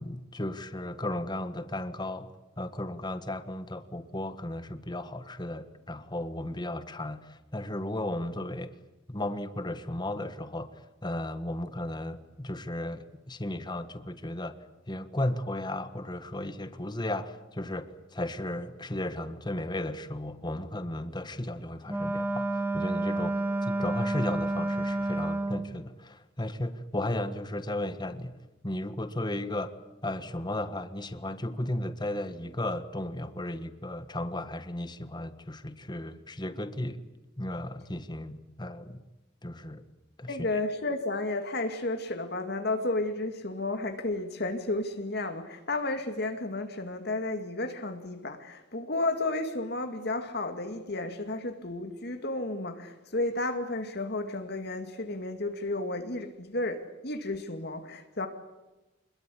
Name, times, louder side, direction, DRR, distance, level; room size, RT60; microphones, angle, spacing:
voice 1, 0.0-2.3 2.6-8.7 9.1-10.7 11.0-14.5 14.9-28.4 28.6-29.7 30.0-37.0 37.4-39.0 39.4-39.9 40.2-40.4, left 1 dB, 20° left, 1.5 m, -35 dB
Wind instrument woodwind instrument, 21.9-25.7, right 2 dB, 10° right, 1.9 m, -30 dB
voice 2, 40.3-58.3, left 2 dB, 55° left, 2.2 m, -32 dB
26.0 x 21.5 x 8.5 m
head